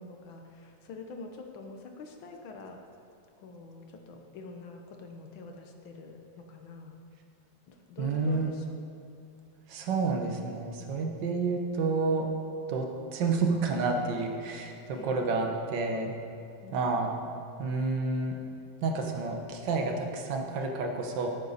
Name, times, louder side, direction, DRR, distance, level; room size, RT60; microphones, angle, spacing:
voice 1, 0.0-2.9 3.4-7.0 7.7-8.8 14.9-15.5 16.6-17.2, left 3 dB, 70° left, 3 dB, 1.2 m, -46 dB
voice 2, 8.0-8.5 9.7-12.3 12.7-12.9 13.1-16.1 16.7-17.1 17.6-18.3 18.8-21.3, right 4 dB, 55° right, 2 dB, 1.3 m, -29 dB
17.0 x 9.3 x 4.2 m, 2.6 s
omnidirectional pair, 3.4 m